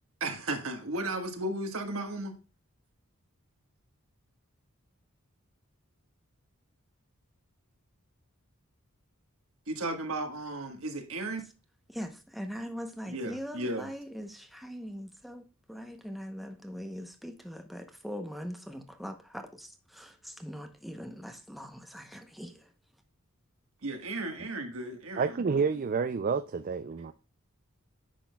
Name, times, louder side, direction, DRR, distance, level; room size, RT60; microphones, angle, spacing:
voice 1, 0.2-2.3 9.7-11.4 13.1-13.9 23.8-25.6, right 2 dB, 70° right, 1.5 m, -35 dB
voice 2, 11.9-22.7, equal, ahead, 0.8 m, -41 dB
voice 3, 25.2-27.1, right 5 dB, 40° right, 0.4 m, -29 dB
10.0 x 6.2 x 2.3 m
head